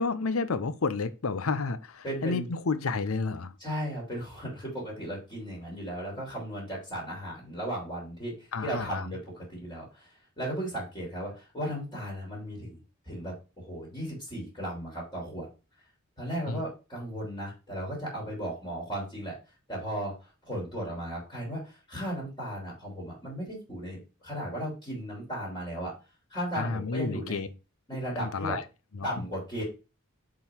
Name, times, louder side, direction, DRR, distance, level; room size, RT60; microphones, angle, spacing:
voice 1, 0.0-3.5 8.5-9.1 16.5-16.6 26.6-27.5 28.2-28.6 28.9-29.2, left 4 dB, 75° left, 0.7 m, -31 dB
voice 2, 2.0-2.5 3.6-10.1 10.4-15.5 16.2-19.3 19.7-25.9 26.3-27.5 27.9-28.6 29.0-29.6, equal, 20° left, 3.3 m, -36 dB
7.5 x 3.9 x 4.5 m
head